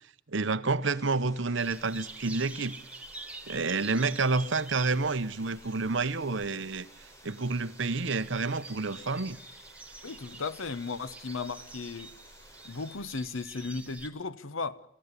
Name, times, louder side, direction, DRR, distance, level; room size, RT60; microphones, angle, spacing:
voice 1, 0.3-2.8 3.5-6.9 7.2-9.4, right 3 dB, 60° right, 1.0 m, -29 dB
sound 1, 0.8-13.0, equal, 15° left, 3.8 m, -56 dB
sound 2, 1.6-14.1, right 3 dB, 5° right, 1.4 m, -48 dB
voice 2, 10.0-12.1 12.6-14.8, left 4 dB, 75° left, 1.0 m, -36 dB
28.0 x 15.0 x 9.8 m
head